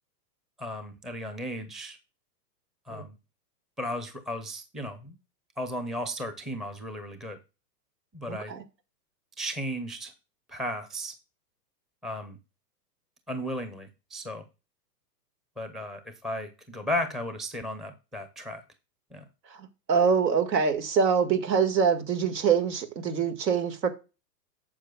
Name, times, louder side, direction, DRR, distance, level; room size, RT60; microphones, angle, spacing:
voice 1, 0.6-2.0 2.9-3.2 3.8-5.2 5.6-7.4 8.1-8.5 9.4-10.1 10.5-11.1 12.0-12.4 13.3-14.4 15.6-18.6 19.1-19.2, equal, ahead, 0.5 m, -35 dB
voice 2, 8.3-8.6 19.9-23.9, right 6 dB, 80° right, 2.0 m, -24 dB
11.5 x 7.5 x 2.3 m
hypercardioid pair, 130°, 49 cm